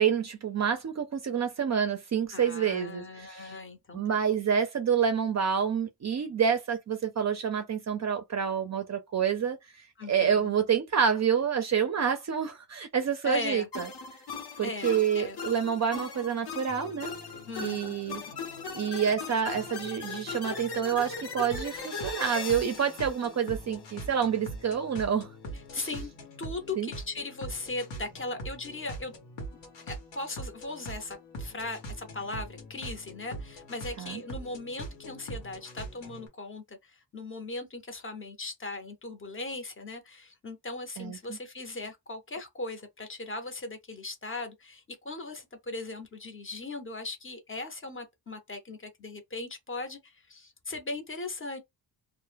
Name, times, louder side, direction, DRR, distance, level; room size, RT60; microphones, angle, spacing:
voice 1, 0.0-3.5 3.9-9.6 10.1-13.9 14.6-17.1 17.6-18.2 18.7-25.3 25.8-25.9 26.8-26.9 34.0-34.2 41.0-41.2, right 7 dB, 40° right, 0.4 m, -28 dB
voice 2, 2.3-4.2 10.0-10.5 13.2-13.7 14.6-15.5 17.5-17.9 25.7-26.1 26.4-29.2 29.9-51.6, left 2 dB, 30° left, 0.6 m, -38 dB
sound 1, 13.7-24.1, left 5 dB, 60° left, 0.8 m, -39 dB
sound 2, 16.7-36.3, right 1 dB, 90° left, 1.0 m, -43 dB
2.1 x 2.1 x 3.2 m
cardioid pair, 105°, 44 cm